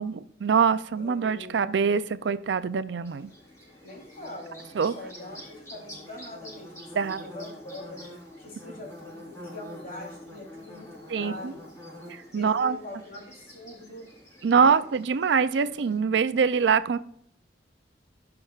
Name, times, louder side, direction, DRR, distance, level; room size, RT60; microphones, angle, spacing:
voice 1, 0.0-3.3 4.8-4.9 7.0-7.3 11.1-11.5 12.1-12.8 14.4-17.0, right 6 dB, 85° right, 14 dB, 0.4 m, -24 dB
voice 2, 0.9-1.6 3.8-8.0 8.4-11.7 12.3-14.1 14.5-14.8, left 1 dB, 50° left, -3 dB, 3.2 m, -43 dB
Bird / Buzz, 3.0-16.0, left 1 dB, 15° left, 3.9 m, -46 dB
17.0 x 5.8 x 2.4 m, 0.67 s
head